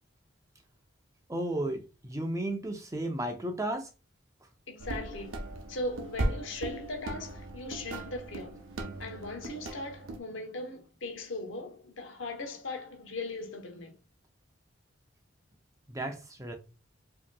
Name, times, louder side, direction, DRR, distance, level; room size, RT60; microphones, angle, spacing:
voice 1, 1.3-3.9 15.9-16.5, right 1 dB, 15° right, 0.5 m, -34 dB
voice 2, 4.7-5.4 5.7-8.6 9.0-14.0, left 2 dB, 75° left, 0.9 m, -39 dB
sound 1, 4.8-10.2, right 1 dB, 80° right, 0.7 m, -37 dB
4.9 x 2.8 x 2.2 m
head